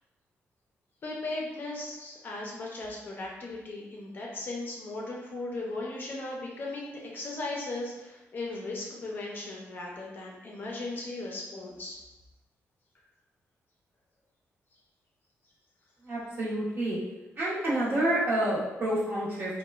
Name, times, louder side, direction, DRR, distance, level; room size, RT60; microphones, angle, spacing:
voice 1, 1.0-12.0, left 2 dB, 40° left, -2 dB, 0.5 m, -37 dB
voice 2, 16.0-17.0 17.4-19.6, right 1 dB, 40° right, -6 dB, 0.8 m, -28 dB
2.9 x 2.1 x 2.3 m, 1.0 s
wide cardioid pair, 150°, 5 cm